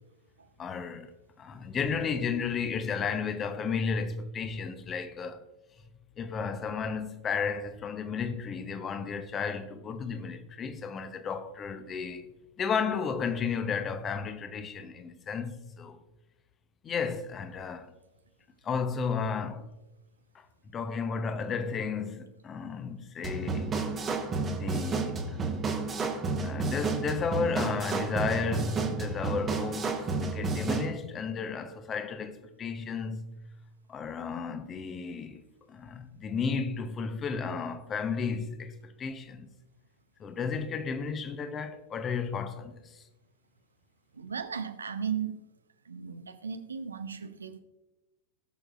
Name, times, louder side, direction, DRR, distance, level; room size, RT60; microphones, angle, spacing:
voice 1, 0.6-5.4 6.2-16.0 16.8-17.9 18.6-19.7 20.3-23.8 24.5-25.6 26.4-33.4 33.9-35.4 35.7-39.5 40.2-43.0, left 5 dB, 25° left, 0.9 m, -33 dB
sound 1, 23.2-30.9, right 4 dB, 20° right, 1.2 m, -31 dB
voice 2, 44.2-45.4 45.9-47.6, right 7 dB, 75° right, 0.7 m, -36 dB
19.0 x 6.4 x 2.5 m
figure-of-eight pair, 90°, 0 cm